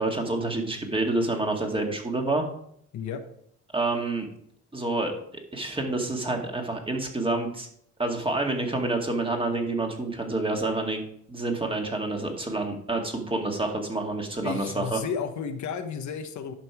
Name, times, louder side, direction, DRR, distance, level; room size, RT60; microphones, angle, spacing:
voice 1, 0.0-2.4 3.7-4.3 4.7-5.1 5.5-7.7 8.0-15.0, right 2 dB, 15° right, 2 dB, 2.1 m, -28 dB
voice 2, 14.4-16.5, left 6 dB, 70° left, 7 dB, 1.1 m, -32 dB
11.5 x 5.4 x 4.9 m, 0.67 s
cardioid pair, 90°, 30 cm